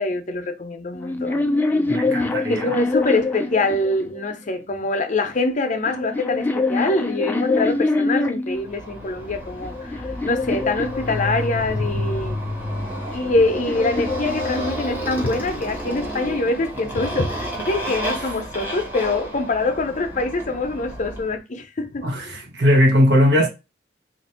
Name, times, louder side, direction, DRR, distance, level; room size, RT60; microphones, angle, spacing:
voice 1, 0.0-2.2 2.5-12.4 13.1-22.4, left 2 dB, 45° left, 0.6 m, -24 dB
sound 1, 0.9-4.3 5.3-8.7 9.3-11.7 12.8-15.2, left 3 dB, 10° left, 0.3 m, -25 dB
voice 2, 1.9-2.6 22.0-23.5, equal, 80° right, 1.1 m, -18 dB
Motorcycle, 8.6-21.3, equal, 10° right, 1.1 m, -30 dB
2.9 x 2.6 x 4.3 m
head